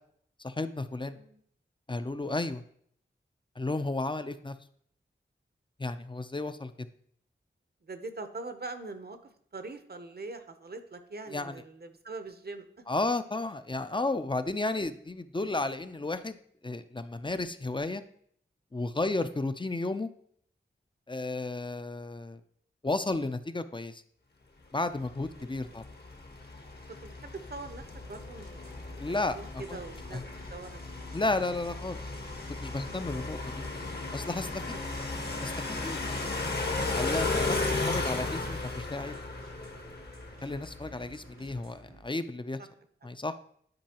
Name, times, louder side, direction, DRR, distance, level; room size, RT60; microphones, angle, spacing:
voice 1, 0.4-1.2 1.9-2.6 3.6-4.6 5.8-6.7 11.3-11.6 12.9-16.4 16.6-18.0 18.7-20.1 21.1-22.4 22.8-24.0 24.7-25.9 29.0-29.8 30.1-30.2 31.1-32.0 32.6-33.7 34.1-34.6 35.4-36.0 36.8-39.2 40.4-42.6 43.0-43.3, left 2 dB, 25° left, 11 dB, 0.5 m, -33 dB
voice 2, 1.1-1.4 7.9-12.6 25.4-25.6 27.0-30.2 30.5-30.8 33.2-33.3 33.6-33.7 34.7-34.8 40.9-41.2, right 3 dB, 50° right, 9 dB, 0.8 m, -43 dB
sound 1, 25.0-41.2, left 3 dB, 50° left, 1.1 m, -35 dB
sound 2, 27.9-42.0, right 2 dB, 90° right, 1.1 m, -54 dB
10.5 x 4.6 x 2.9 m, 0.64 s
wide cardioid pair, 45°, 21 cm